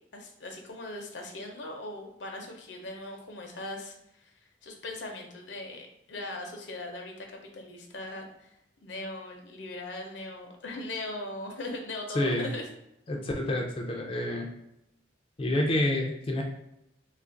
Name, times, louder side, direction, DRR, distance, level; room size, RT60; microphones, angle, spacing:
voice 1, 0.1-4.3 4.6-12.7, left 2 dB, 75° left, 2 dB, 0.7 m, -39 dB
voice 2, 12.1-12.5 13.1-14.5 15.4-16.4, left 1 dB, 30° left, 0 dB, 0.4 m, -28 dB
2.8 x 2.4 x 3.8 m, 0.83 s
head